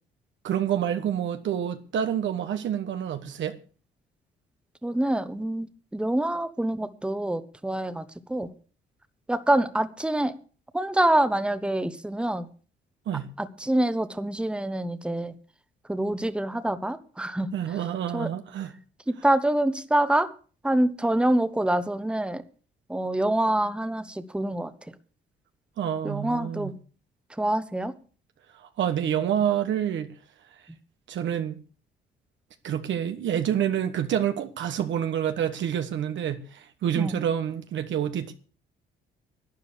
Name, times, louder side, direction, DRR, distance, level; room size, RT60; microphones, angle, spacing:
voice 1, 0.4-3.6 13.1-13.3 17.5-18.7 25.8-26.7 28.6-30.1 31.1-31.6 32.6-38.3, right 9 dB, 70° right, 1.2 m, -28 dB
voice 2, 4.8-5.7 5.9-8.0 8.3-8.5 9.3-10.3 10.7-12.5 13.4-15.3 15.9-17.5 18.1-18.3 19.1-20.3 20.6-22.4 22.9-24.7 26.0-26.7 27.4-27.9 37.0-37.1, right 1 dB, 5° right, 1.1 m, -26 dB
12.0 x 9.7 x 6.7 m
cardioid pair, 90°, 20 cm